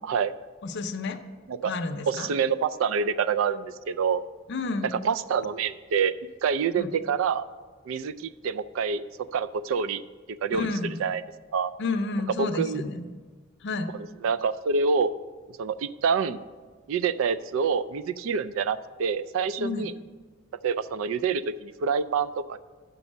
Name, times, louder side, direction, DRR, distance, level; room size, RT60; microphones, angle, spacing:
voice 1, 0.6-1.2 1.6-2.3 4.5-5.0 6.8-6.9 10.5-11.0 11.8-13.1 13.6-13.9 19.6-19.9, left 3 dB, 60° left, 6 dB, 0.6 m, -30 dB
voice 2, 2.1-4.2 5.0-6.1 6.4-7.4 7.9-9.0 9.3-10.0 10.3-10.7 11.0-11.2 11.5-11.7 12.4-12.8 14.2-15.1 15.6-16.4 16.9-19.9 20.6-22.6, right 6 dB, 75° right, 14 dB, 0.3 m, -26 dB
6.8 x 5.4 x 7.2 m, 1.4 s
head